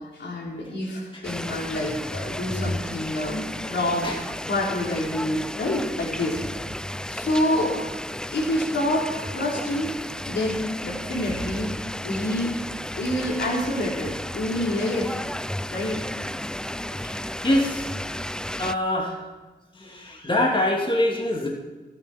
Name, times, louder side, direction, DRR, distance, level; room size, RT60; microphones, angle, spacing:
voice 1, 0.0-4.1 4.5-6.5 7.1-7.8 8.3-9.1 9.3-9.9 10.3-11.7 12.0-12.5 13.0-15.1 15.7-16.0, left 1 dB, 80° left, -3 dB, 4.2 m, -27 dB
sound 1, 1.2-18.7, left 1 dB, 5° left, 0.5 m, -33 dB
voice 2, 17.0-17.9 18.6-19.3 19.7-21.5, left 1 dB, 30° left, -1 dB, 2.8 m, -25 dB
26.0 x 9.0 x 4.6 m, 1.2 s
cardioid pair, 60°, 18 cm